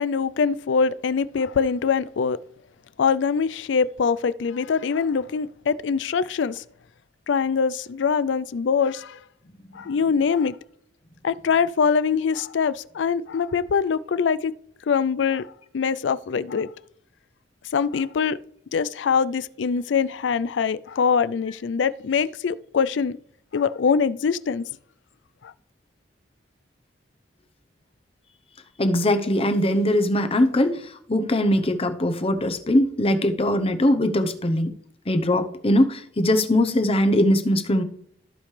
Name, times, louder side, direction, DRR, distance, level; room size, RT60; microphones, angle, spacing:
voice 1, 0.0-2.4 3.0-6.6 7.3-9.2 9.7-10.6 11.2-14.5 14.9-16.7 17.7-18.4 18.7-23.2 23.5-24.6 25.4-25.5, left 6 dB, 90° left, 0.4 m, -23 dB
voice 2, 28.8-30.8 31.1-34.7 35.1-37.8, left 1 dB, 35° left, 0.8 m, -21 dB
14.5 x 5.1 x 3.3 m
head